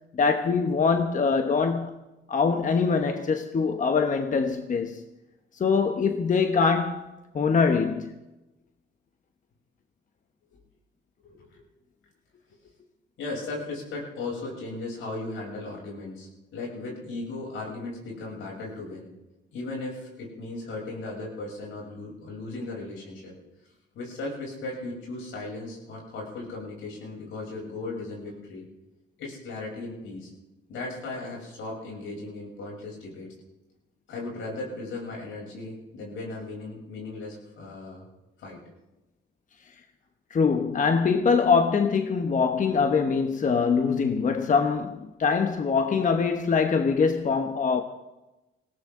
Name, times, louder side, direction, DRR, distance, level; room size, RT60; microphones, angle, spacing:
voice 1, 0.1-2.0 2.3-5.0 5.5-7.1 7.3-8.1 40.3-47.8, left 5 dB, 40° left, 1.1 m, -23 dB
voice 2, 11.2-11.6 13.2-19.1 19.5-23.3 23.9-28.7 29.2-30.3 30.7-33.3 34.1-38.0 38.4-38.6, left 2 dB, 80° left, 7.4 m, -37 dB
20.0 x 17.0 x 3.8 m
cardioid pair, 90°, 20 cm